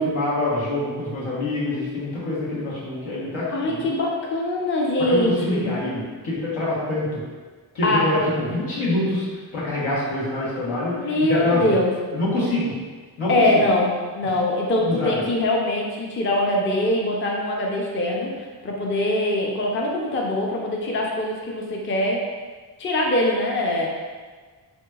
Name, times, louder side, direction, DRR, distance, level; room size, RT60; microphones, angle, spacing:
voice 1, 0.0-3.9 5.0-7.2 7.7-11.8 12.1-12.8 13.2-13.6 14.2-14.4 14.8-15.3, left 2 dB, 80° left, -7 dB, 1.2 m, -25 dB
voice 2, 3.5-5.7 7.8-8.0 10.7-11.9 13.3-18.3 18.6-22.2 22.8-23.9, left 1 dB, 25° left, -1 dB, 0.5 m, -23 dB
3.3 x 2.9 x 2.3 m, 1.4 s
cardioid pair, 60°, 48 cm